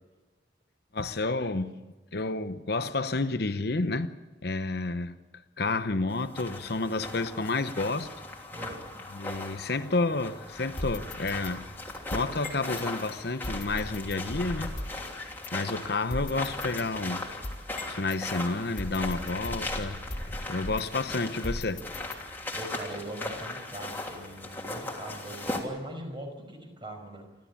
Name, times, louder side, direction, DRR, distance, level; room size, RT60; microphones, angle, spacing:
voice 1, 0.9-1.8 2.1-4.1 4.4-5.2 5.6-8.1 9.1-11.6 12.1-14.8 15.5-17.3 17.9-20.0 20.5-21.8, left 3 dB, 60° left, 0.9 m, -30 dB
sound 1, 6.1-25.6, left 2 dB, 10° left, 3.0 m, -38 dB
voice 2, 8.5-8.8 22.5-27.2, right 1 dB, 25° right, 5.4 m, -41 dB
sound 2, 10.8-12.9 13.4-15.0 15.4-15.5 16.1-18.2 18.8-21.1 21.4-22.5, left 1 dB, 45° left, 2.7 m, -38 dB
29.5 x 13.0 x 8.5 m
head